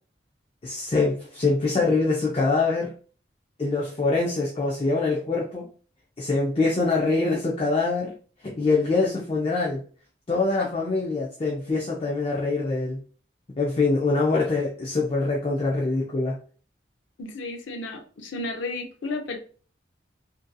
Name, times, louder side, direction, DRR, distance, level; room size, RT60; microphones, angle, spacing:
voice 1, 0.6-2.9 3.6-5.7 6.2-8.1 8.4-9.8 10.3-13.0 13.6-16.4, left 3 dB, 30° left, -2 dB, 0.4 m, -24 dB
voice 2, 17.2-19.4, left 2 dB, 90° left, 5 dB, 0.5 m, -33 dB
2.6 x 2.5 x 2.2 m, 0.40 s
head